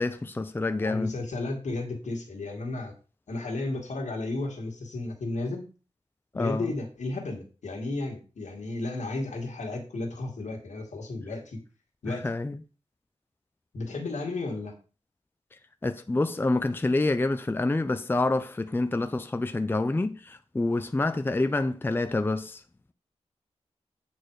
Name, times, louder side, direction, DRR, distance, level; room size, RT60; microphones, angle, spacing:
voice 1, 0.0-1.1 6.4-6.6 12.2-12.5 15.8-22.6, left 2 dB, 20° left, 0.5 m, -27 dB
voice 2, 0.8-2.9 3.3-5.7 6.3-11.6 12.0-12.3 13.7-14.7, left 2 dB, 85° left, 2.0 m, -33 dB
8.7 x 4.2 x 4.7 m
wide cardioid pair, 110°, 12 cm